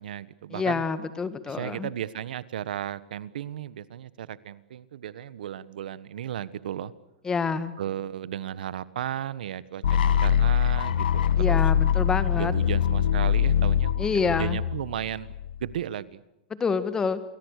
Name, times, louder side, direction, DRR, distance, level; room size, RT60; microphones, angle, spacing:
voice 1, 0.0-0.8 1.5-6.9 7.8-11.6 12.3-15.3 15.6-16.2, right 10 dB, 75° right, 17 dB, 1.3 m, -35 dB
voice 2, 0.5-1.9 7.2-7.7 11.4-12.5 14.0-14.6 16.6-17.2, left 5 dB, 15° left, 13 dB, 1.7 m, -27 dB
sound 1, 9.8-15.8, left 9 dB, 85° left, 1.4 m, -23 dB
29.0 x 22.5 x 6.6 m, 0.96 s
supercardioid pair, 150°, 5 cm